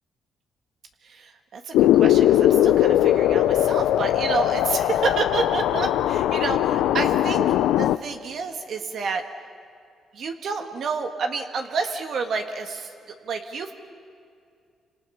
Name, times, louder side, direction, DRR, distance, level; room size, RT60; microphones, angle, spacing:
voice 1, 1.0-9.2 10.1-13.7, right 4 dB, 60° right, 5 dB, 1.6 m, -29 dB
sound 1, 1.7-8.0, left 12 dB, 90° left, 0.6 m, -20 dB
28.0 x 26.5 x 5.7 m, 2.3 s
cardioid pair, 90°, 0 cm